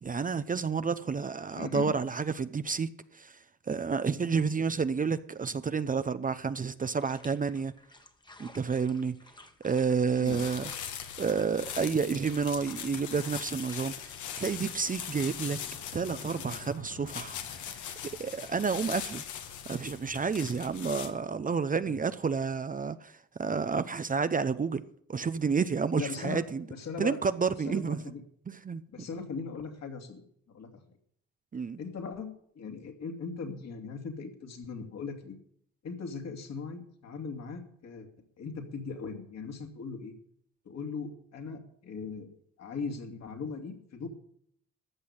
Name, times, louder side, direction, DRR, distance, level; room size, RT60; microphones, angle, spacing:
voice 1, 0.0-3.4 3.7-7.7 8.4-9.2 9.6-10.7 11.2-15.6 15.9-19.2 19.7-24.8 25.1-26.7 27.0-28.0 28.5-29.1 31.5-31.8, right 5 dB, 25° right, 0.6 m, -30 dB
voice 2, 1.5-2.0 10.2-10.4 21.8-22.0 25.9-26.4 26.7-27.2 27.7-28.2 28.9-30.2 30.5-30.8 31.8-35.4 35.8-38.1 38.4-40.1 40.6-42.3 42.6-44.1, left 5 dB, 60° left, 2.6 m, -39 dB
sound 1, 6.8-13.8, left 2 dB, 15° left, 1.4 m, -55 dB
sound 2, 10.3-21.1, left 8 dB, 75° left, 1.5 m, -41 dB
14.5 x 6.1 x 9.9 m
cardioid pair, 90°, 30 cm